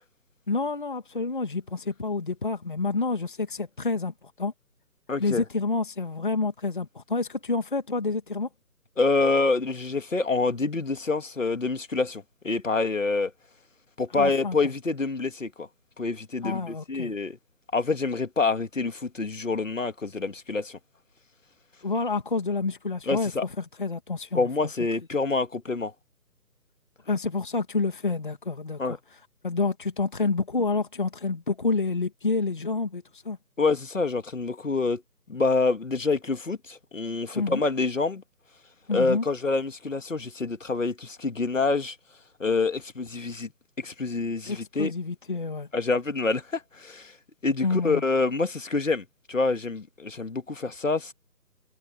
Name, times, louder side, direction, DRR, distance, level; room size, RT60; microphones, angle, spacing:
voice 1, 0.5-4.5 5.2-8.5 14.1-14.7 16.4-17.1 21.8-24.5 27.1-29.0 29.4-33.4 37.3-37.6 38.9-39.2 44.5-45.7 47.6-48.0, left 3 dB, 30° left, 1.9 m, -28 dB
voice 2, 5.1-5.4 9.0-13.3 14.0-15.7 16.0-17.4 17.7-20.8 23.1-23.5 24.3-25.9 28.8-29.0 33.6-35.0 35.3-38.2 38.9-42.0 42.4-43.5 43.8-44.9 45.7-47.1 47.4-51.1, left 3 dB, 50° left, 2.3 m, -27 dB
figure-of-eight pair, 175°, 49 cm